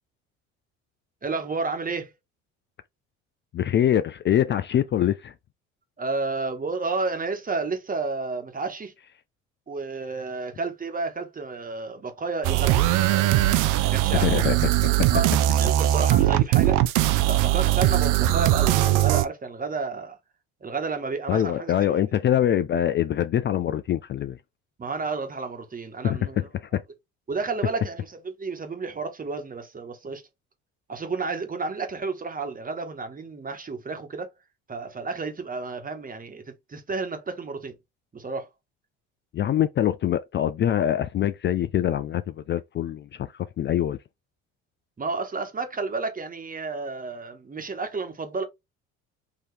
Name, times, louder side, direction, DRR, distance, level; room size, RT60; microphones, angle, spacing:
voice 1, 1.2-2.1 6.0-8.9 9.7-12.8 13.1-14.6 15.1-16.8 17.2-20.2 20.6-22.0 24.8-26.4 27.3-30.2 30.9-34.3 34.7-37.7 38.1-38.5 45.0-48.4, right 4 dB, 25° right, 1.3 m, -31 dB
voice 2, 3.5-5.3 14.2-14.7 15.0-15.1 21.3-24.4 26.0-26.8 39.3-44.0, left 10 dB, 35° left, 0.4 m, -24 dB
sound 1, 12.4-19.3, right 14 dB, 70° right, 0.7 m, -20 dB
4.8 x 2.9 x 3.3 m
supercardioid pair, 75°, 33 cm